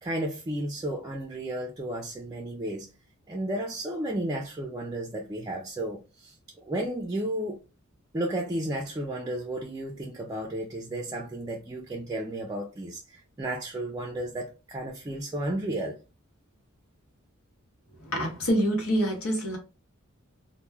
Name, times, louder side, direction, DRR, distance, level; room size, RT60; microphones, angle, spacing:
voice 1, 0.0-2.9 3.3-6.3 6.7-7.6 8.1-16.0, right 1 dB, 15° right, 0.4 m, -33 dB
voice 2, 18.0-19.6, equal, 85° left, 0.9 m, -26 dB
2.2 x 2.1 x 3.2 m
head